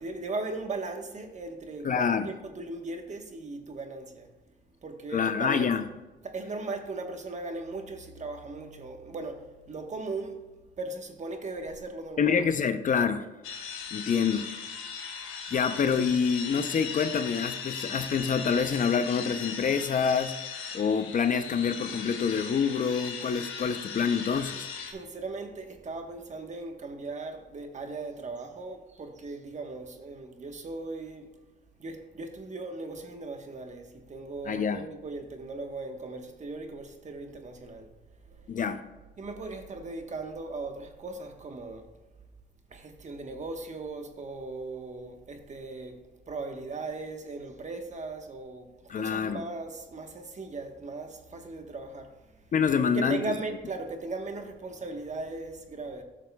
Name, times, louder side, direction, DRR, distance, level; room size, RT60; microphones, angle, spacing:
voice 1, 0.0-4.3 4.8-5.7 6.2-10.4 10.8-12.4 24.9-31.3 31.8-37.9 38.2-38.4 39.2-41.9 42.7-48.7 48.9-52.1 52.8-56.0, right 3 dB, 35° right, 1.1 m, -38 dB
voice 2, 1.8-2.3 5.1-5.8 12.2-13.3 13.9-14.5 15.5-20.4 20.7-24.7 34.5-34.8 38.5-38.8 48.9-49.4 52.5-53.4, left 6 dB, 40° left, 0.5 m, -26 dB
sound 1, 13.4-24.9, left 6 dB, 90° left, 1.3 m, -38 dB
12.0 x 6.5 x 2.2 m
cardioid pair, 90°, 20 cm